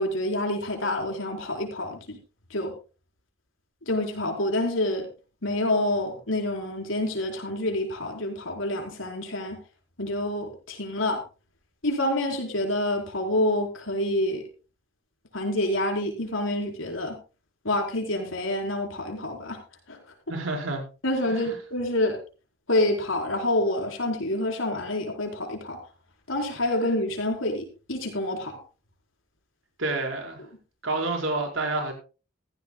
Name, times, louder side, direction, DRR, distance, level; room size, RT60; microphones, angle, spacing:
voice 1, 0.0-2.2 2.5-2.7 3.9-5.1 5.4-9.6 10.0-11.2 11.8-14.4 15.3-17.1 17.6-19.6 19.9-20.0 21.0-22.2 22.7-25.8 26.3-28.5, left 1 dB, 80° left, 4.6 m, -27 dB
voice 2, 20.3-20.8 21.3-21.6 29.8-30.5 30.8-31.9, right 2 dB, 80° right, 4.9 m, -29 dB
15.5 x 15.5 x 2.3 m
head